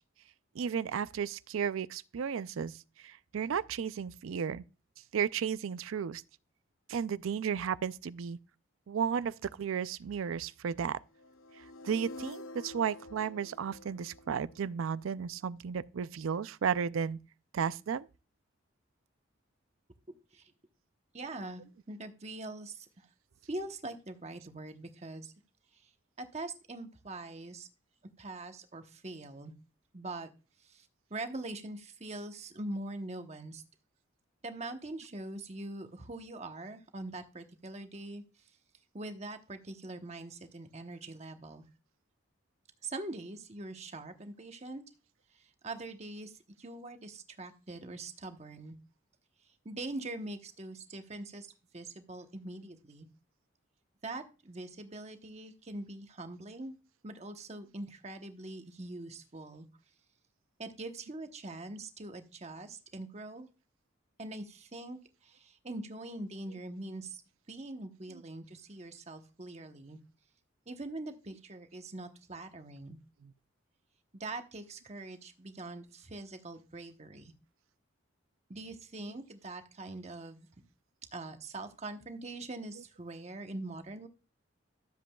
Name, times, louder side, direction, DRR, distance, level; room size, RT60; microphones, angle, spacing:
voice 1, 0.5-2.7 3.0-4.6 5.1-6.2 6.9-8.4 8.9-11.0 11.8-17.2 17.5-18.1 73.2-73.3 79.1-79.2, right 7 dB, 80° right, 0.4 m, -34 dB
sound 1, 11.1-15.2, left 2 dB, 80° left, 0.7 m, -48 dB
voice 2, 21.1-23.1 23.5-25.3 25.7-25.9 26.2-27.7 28.2-29.5 29.9-30.3 30.6-33.6 34.4-38.5 38.9-41.6 42.8-44.8 45.3-48.8 49.6-53.1 54.0-56.8 57.0-59.7 60.6-63.5 64.2-67.2 67.5-70.0 70.7-73.0 74.1-77.3 78.5-80.5 81.1-84.1, right 2 dB, 30° right, 1.0 m, -43 dB
13.0 x 7.6 x 2.3 m
head